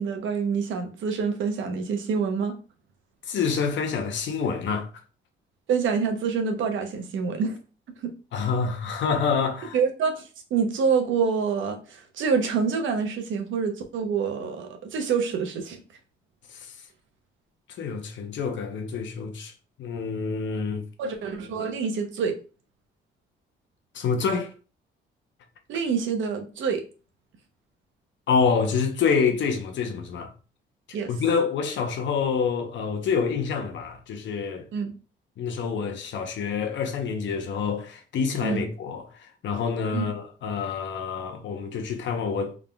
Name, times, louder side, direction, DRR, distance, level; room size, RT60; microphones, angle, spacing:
voice 1, 0.0-2.5 5.7-7.6 8.0-8.1 9.7-15.8 21.0-22.4 25.7-26.9 30.9-31.1 34.7-34.9 38.4-38.6 39.9-40.1, right 5 dB, 75° right, 0.9 m, -26 dB
voice 2, 3.3-4.9 8.3-9.8 16.5-16.8 17.8-19.5 19.8-20.8 23.9-24.5 28.3-30.3 31.1-34.7 35.4-42.5, left 5 dB, 70° left, 0.9 m, -27 dB
3.7 x 3.6 x 2.3 m
cardioid pair, 90°, 20 cm